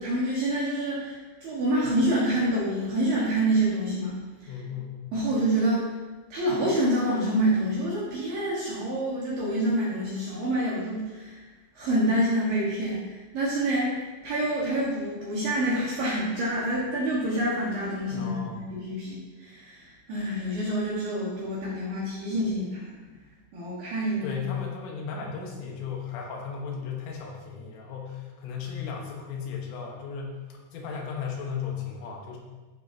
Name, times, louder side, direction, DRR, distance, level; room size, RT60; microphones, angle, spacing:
voice 1, 0.0-4.5 5.1-5.8 6.3-11.4 11.8-13.9 14.2-22.9 23.5-24.4, right 1 dB, 65° right, -7 dB, 2.5 m, -27 dB
voice 2, 4.5-5.0 18.1-18.6 24.2-32.4, left 6 dB, 75° left, 0 dB, 3.7 m, -35 dB
13.5 x 7.3 x 2.8 m, 1.3 s
omnidirectional pair, 6.0 m